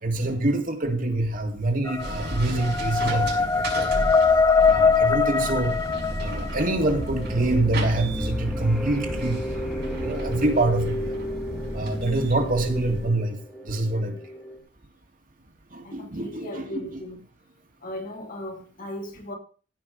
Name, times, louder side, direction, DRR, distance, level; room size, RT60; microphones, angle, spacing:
voice 1, 0.0-4.1 4.7-5.8 6.2-9.7 10.0-11.1 11.7-13.4 13.6-14.2 15.7-17.0, right 2 dB, 50° right, 2.1 m, -26 dB
sound 1, 1.9-6.9, left 5 dB, 20° left, 0.5 m, -22 dB
sound 2, 2.0-13.1, right 1 dB, 65° right, 6.0 m, -33 dB
sound 3, 4.3-14.6, equal, ahead, 3.6 m, -34 dB
voice 2, 15.8-17.2 17.8-19.3, left 1 dB, 45° left, 3.6 m, -37 dB
16.0 x 5.4 x 6.5 m
head